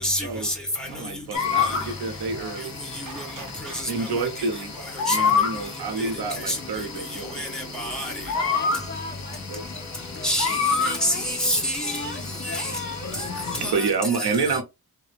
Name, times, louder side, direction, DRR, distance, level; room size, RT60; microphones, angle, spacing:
voice 1, 0.0-0.9 5.1-5.4 6.5-6.6 7.3-8.6 10.2-12.1 12.4-12.7 13.6-13.9 14.2-14.3, equal, ahead, 1.5 m, -27 dB
voice 2, 0.9-2.7 3.9-4.7 5.0-7.4 9.5-9.7 13.6-14.6, right 4 dB, 85° right, 0.9 m, -28 dB
sound 1, 1.3-13.7, left 6 dB, 45° left, 1.1 m, -29 dB
sound 2, 2.4-7.1, right 5 dB, 55° right, 0.9 m, -45 dB
voice 3, 8.3-13.2, left 2 dB, 30° left, 0.5 m, -39 dB
3.2 x 2.1 x 3.3 m
cardioid pair, 80°, 38 cm